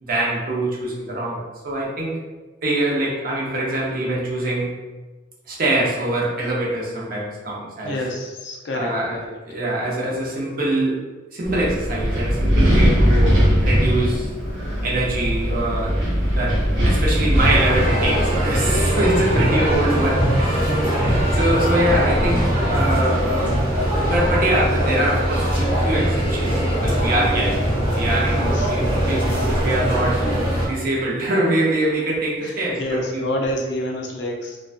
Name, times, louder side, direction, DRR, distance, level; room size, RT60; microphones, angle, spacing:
voice 1, 0.0-2.2 2.6-4.7 5.5-8.0 8.7-9.2 9.5-11.0 11.3-14.3 14.8-16.0 16.4-23.6 24.0-26.5 26.8-27.7 28.0-30.3 30.6-33.2, right 1 dB, 45° right, -4 dB, 0.6 m, -24 dB
voice 2, 7.8-9.3 28.3-28.7 32.4-34.6, left 1 dB, 60° left, 0 dB, 0.4 m, -28 dB
Wind, 11.4-18.8, equal, 70° right, 0.8 m, -20 dB
sound 1, 17.3-30.7, equal, 25° right, 0.9 m, -21 dB
2.4 x 2.2 x 2.4 m, 1.2 s
head